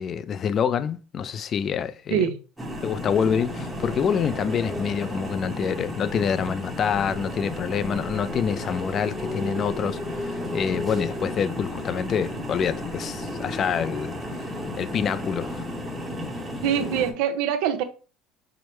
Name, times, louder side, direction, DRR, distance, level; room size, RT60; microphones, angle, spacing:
voice 1, 0.0-2.3 2.8-14.2 14.8-15.6, left 7 dB, 35° left, 0.3 m, -26 dB
sound 1, 2.6-17.1, left 1 dB, 5° right, 0.9 m, -33 dB
voice 2, 16.6-17.8, right 9 dB, 75° right, 0.7 m, -24 dB
4.6 x 2.0 x 4.3 m
cardioid pair, 140°, 0 cm